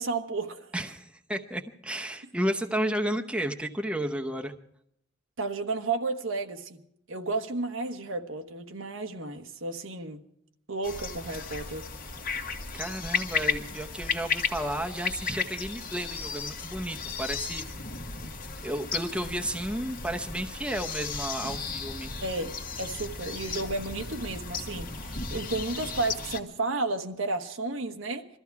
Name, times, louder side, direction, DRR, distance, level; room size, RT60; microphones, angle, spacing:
voice 1, 0.0-0.7 5.4-6.8 7.1-10.2 10.7-11.9 22.2-22.5 22.8-28.3, right 3 dB, 90° right, 1.3 m, -32 dB
voice 2, 0.7-4.6 12.7-17.6 18.6-22.1, right 1 dB, 5° right, 0.8 m, -32 dB
sound 1, 10.8-26.4, left 5 dB, 45° left, 1.4 m, -35 dB
22.0 x 14.0 x 4.7 m
head